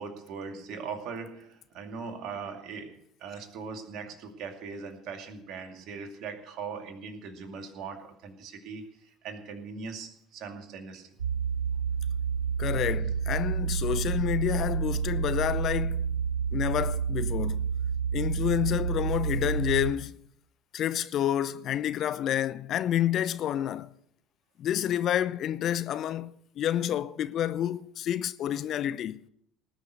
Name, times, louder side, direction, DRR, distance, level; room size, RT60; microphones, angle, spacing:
voice 1, 0.0-11.2, right 5 dB, 55° right, 2.4 m, -40 dB
sound 1, 11.2-19.9, right 7 dB, 85° right, 0.5 m, -29 dB
voice 2, 12.6-16.1 16.5-17.7 18.1-20.2 20.7-23.9 24.6-29.2, left 11 dB, 50° left, 0.6 m, -29 dB
19.0 x 6.4 x 8.1 m
figure-of-eight pair, 60°, 0 cm